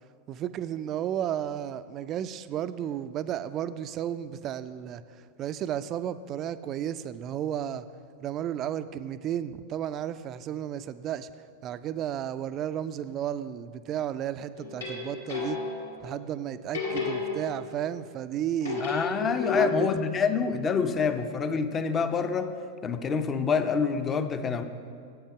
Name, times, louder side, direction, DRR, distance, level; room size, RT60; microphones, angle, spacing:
voice 1, 0.3-5.0 5.4-7.9 8.2-11.3 11.6-15.6 16.0-18.8 19.5-20.0, right 10 dB, 35° right, 13 dB, 0.3 m, -33 dB
sound 1, 14.6-16.0 16.7-17.9 18.6-20.0, left 4 dB, 75° left, 2.1 m, -32 dB
voice 2, 18.8-22.5 22.8-24.6, left 5 dB, 25° left, 10 dB, 0.5 m, -27 dB
8.5 x 7.9 x 4.8 m, 2.3 s
figure-of-eight pair, 90°, 0 cm